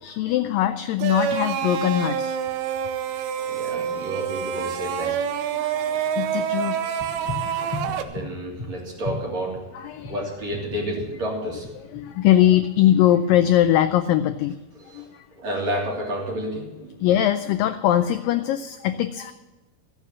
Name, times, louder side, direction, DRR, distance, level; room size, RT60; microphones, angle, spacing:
voice 1, 0.0-2.4 5.0-5.1 5.5-7.0 7.4-7.8 9.7-10.3 11.8-14.6 14.9-15.3 17.0-19.3, left 12 dB, 85° left, 10 dB, 2.0 m, -22 dB
sound 1, 1.0-8.0, right 8 dB, 80° right, 2.8 m, -27 dB
voice 2, 3.1-5.2 7.8-9.6 10.1-11.7 14.9-15.1 15.3-17.0, right 1 dB, 45° right, -3 dB, 4.2 m, -30 dB
sound 2, 7.0-13.7, left 3 dB, 55° left, 1.1 m, -37 dB
15.0 x 9.3 x 7.3 m, 1.1 s
omnidirectional pair, 4.5 m